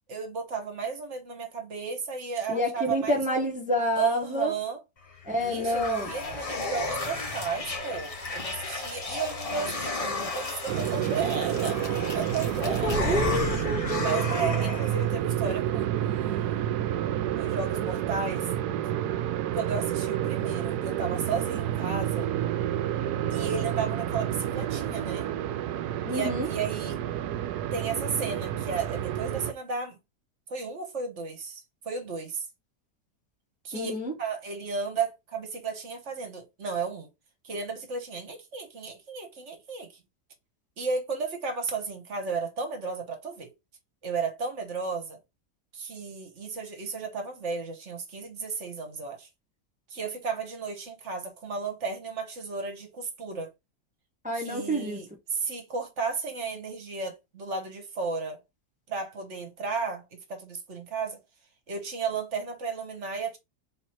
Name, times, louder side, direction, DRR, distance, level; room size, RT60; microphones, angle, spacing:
voice 1, 0.1-3.5 4.0-4.8 5.4-11.9 12.1-13.2 14.0-16.6 17.4-18.5 19.5-22.3 23.3-25.3 26.1-27.0 27.7-30.0 30.5-32.4 33.6-37.1 37.4-40.0 40.8-43.5 44.0-45.2 45.7-49.3 49.9-53.5 54.3-58.4 58.9-60.0 60.3-61.2 61.7-63.4, right 5 dB, 50° right, 1.3 m, -34 dB
voice 2, 2.5-4.5 5.3-6.1 12.8-14.5 26.0-26.5 33.7-34.1 54.2-55.0, left 1 dB, 5° right, 0.7 m, -29 dB
sound 1, 5.1-15.1, left 3 dB, 30° left, 0.7 m, -33 dB
sound 2, 10.7-29.5, right 11 dB, 75° right, 1.1 m, -29 dB
3.8 x 3.0 x 4.3 m
omnidirectional pair, 1.7 m